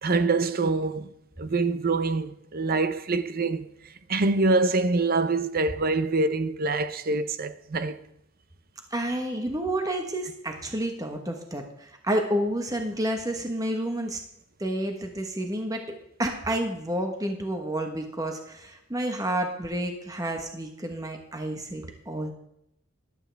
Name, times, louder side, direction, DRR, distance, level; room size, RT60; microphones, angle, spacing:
voice 1, 0.0-1.1 1.4-3.7 4.1-8.0, right 3 dB, 45° right, 0.7 m, -25 dB
voice 2, 8.9-14.2 14.6-15.8 16.2-22.3, right 1 dB, 15° right, 1.2 m, -30 dB
14.0 x 12.0 x 3.4 m
head